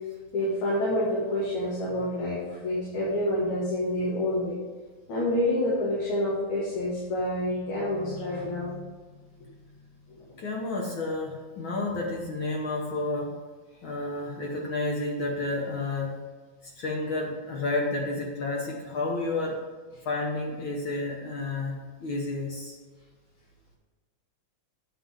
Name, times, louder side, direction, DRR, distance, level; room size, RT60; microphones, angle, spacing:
voice 1, 0.3-4.6 5.1-8.8 10.1-10.2, left 1 dB, 80° left, -8 dB, 3.2 m, -28 dB
voice 2, 10.4-13.4 13.8-16.1 16.6-19.6 20.0-22.8, left 2 dB, 60° left, -1 dB, 1.4 m, -31 dB
9.2 x 7.0 x 3.6 m, 1.5 s
omnidirectional pair, 3.4 m